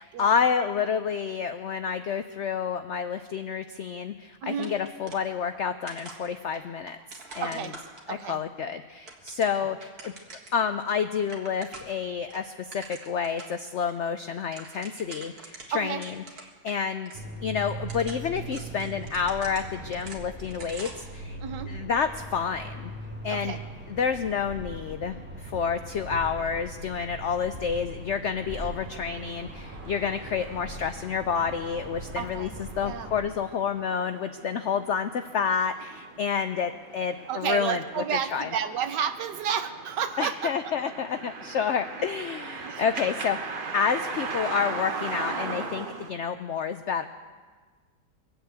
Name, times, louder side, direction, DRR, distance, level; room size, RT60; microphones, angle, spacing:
voice 1, 0.0-7.0 7.3-7.7 8.1-10.1 10.5-16.1 16.6-21.4 21.7-22.9 23.2-23.6 23.9-37.8 38.3-38.5 40.2-47.1, left 6 dB, 75° left, 9 dB, 0.6 m, -29 dB
voice 2, 4.4-4.7 7.4-7.7 8.1-8.4 15.7-16.0 21.4-21.7 23.3-23.6 32.2-32.5 32.8-33.1 37.3-40.5 42.6-42.8, right 8 dB, 80° right, 10 dB, 1.5 m, -31 dB
sound 1, 4.6-5.6 5.9-8.3 8.8-10.6 10.9-11.0 11.2-12.0 12.3-13.6 13.9-14.0 14.3-16.8 17.1-17.2 17.7-21.1, right 3 dB, 60° right, 2.2 m, -45 dB
sound 2, 17.1-33.3, right 1 dB, 5° right, 1.2 m, -40 dB
sound 3, 28.4-46.1, right 4 dB, 40° right, 0.8 m, -39 dB
22.0 x 7.9 x 8.1 m, 1.5 s
omnidirectional pair, 1.9 m